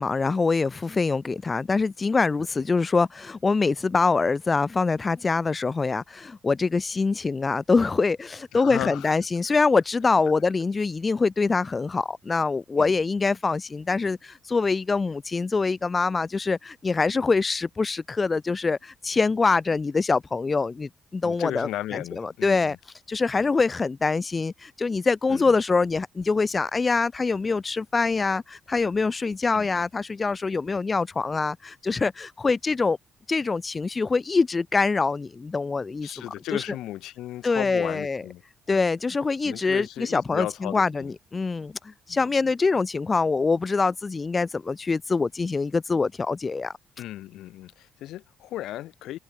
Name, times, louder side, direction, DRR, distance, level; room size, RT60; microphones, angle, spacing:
voice 1, 0.0-22.8 23.1-33.0 33.3-36.6 37.4-38.2 38.7-46.7, left 4 dB, 30° left, 1.3 m, -24 dB
voice 2, 8.5-9.1 9.5-9.6 12.8-13.0 21.2-22.8 25.3-25.6 29.5-29.8 36.0-38.4 38.7-38.8 39.4-41.1 41.4-41.5 42.1-42.2 47.0-49.2, left 14 dB, 85° left, 6.2 m, -35 dB
cardioid pair, 90°, 0 cm